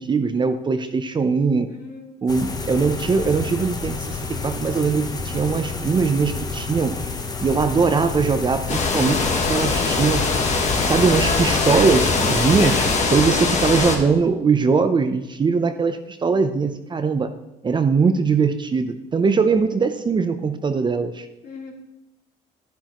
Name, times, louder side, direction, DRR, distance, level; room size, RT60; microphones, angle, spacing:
voice 1, 0.0-1.7 2.2-7.0 7.4-10.3 10.8-12.8 13.1-17.3 17.6-21.3, right 5 dB, 25° right, 9 dB, 0.6 m, -21 dB
voice 2, 1.7-2.1 2.4-2.9 13.1-13.7 21.4-21.7, left 5 dB, 65° left, -1 dB, 2.7 m, -39 dB
sound 1, 2.3-13.0, left 4 dB, 25° left, 1.0 m, -30 dB
sound 2, 8.7-14.0, left 4 dB, 45° left, 1.5 m, -21 dB
11.5 x 10.0 x 3.0 m, 0.93 s
cardioid pair, 110°, 17 cm